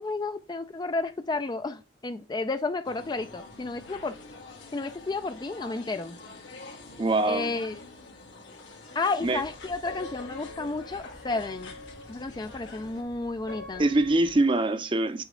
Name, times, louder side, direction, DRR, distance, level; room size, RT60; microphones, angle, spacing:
voice 1, 0.0-4.2 4.7-6.2 7.2-7.8 8.9-11.7 12.1-13.9, left 3 dB, 25° left, 0.3 m, -32 dB
sound 1, 2.8-13.0, left 3 dB, 90° left, 1.8 m, -46 dB
voice 2, 7.0-7.5 9.2-9.4 13.8-15.2, right 2 dB, 25° right, 0.6 m, -23 dB
sound 2, 9.2-14.4, left 2 dB, 70° left, 2.7 m, -45 dB
6.2 x 4.2 x 3.7 m
head